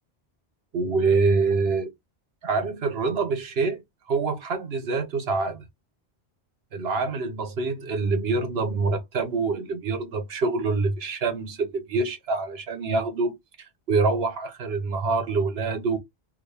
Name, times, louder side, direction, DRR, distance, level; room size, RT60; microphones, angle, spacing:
voice 1, 0.7-1.9 2.4-3.8 4.1-5.7 6.7-13.3 13.9-16.0, right 4 dB, 70° right, 1.1 m, -25 dB
3.6 x 2.2 x 3.3 m
omnidirectional pair, 1.1 m